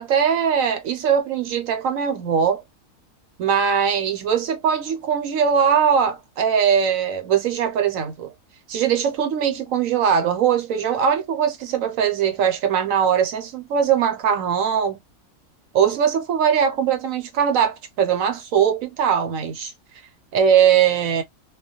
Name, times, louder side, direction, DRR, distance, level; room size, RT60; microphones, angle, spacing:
voice 1, 0.0-2.6 3.4-8.3 8.7-15.0 15.7-19.7 20.3-21.2, right 7 dB, 70° right, 1.0 m, -20 dB
2.4 x 2.2 x 2.7 m
omnidirectional pair, 1.5 m